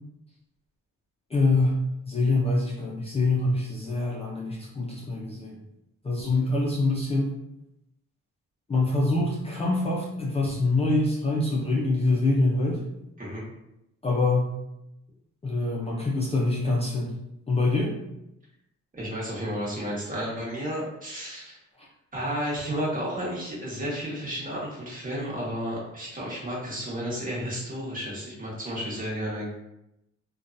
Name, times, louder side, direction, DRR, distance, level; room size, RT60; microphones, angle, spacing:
voice 1, 1.3-1.8 2.1-5.6 6.0-7.3 8.7-12.8 14.0-14.5 15.4-17.1 17.5-17.9, left 2 dB, 20° left, -4 dB, 0.4 m, -25 dB
voice 2, 18.9-21.6 22.1-29.5, equal, 30° right, -6 dB, 1.2 m, -32 dB
2.7 x 2.3 x 2.5 m, 0.86 s
cardioid pair, 90°, 30 cm